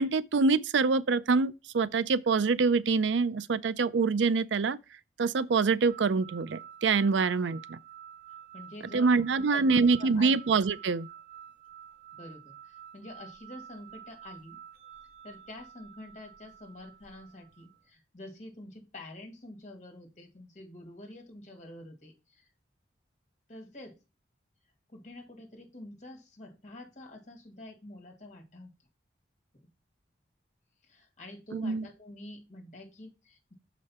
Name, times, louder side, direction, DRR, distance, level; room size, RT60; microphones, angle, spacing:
voice 1, 0.0-4.8 5.2-7.8 8.9-11.1 31.5-31.9, right 4 dB, 80° right, 0.5 m, -25 dB
sound 1, 5.9-17.8, right 9 dB, 50° right, 1.7 m, -50 dB
voice 2, 8.5-10.4 12.1-14.6 15.2-22.5 23.5-24.0 24.9-28.7 30.8-33.5, left 1 dB, 40° left, 2.1 m, -47 dB
6.7 x 5.0 x 4.2 m
head